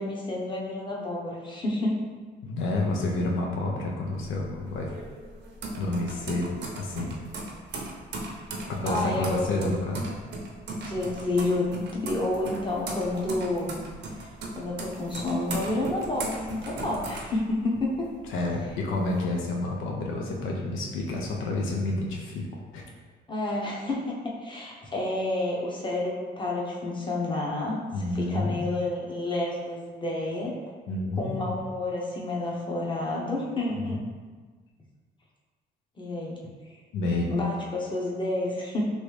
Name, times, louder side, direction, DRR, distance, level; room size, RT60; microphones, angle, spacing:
voice 1, 0.0-1.9 8.9-9.7 10.8-13.8 14.2-18.1 23.3-30.5 31.2-34.0 36.0-36.4 36.7-38.8, left 2 dB, 25° left, -3 dB, 0.8 m, -30 dB
voice 2, 2.4-4.9 5.7-7.2 8.7-10.1 18.3-22.5 22.7-22.8 27.9-28.6 30.9-31.6 33.7-33.9 36.9-37.2, left 2 dB, 85° left, -1 dB, 0.6 m, -29 dB
sound 1, 4.1-18.0 18.4-19.2, right 2 dB, 60° right, 0.7 m, -38 dB
3.1 x 2.6 x 3.1 m, 1.4 s
cardioid pair, 90°, 20 cm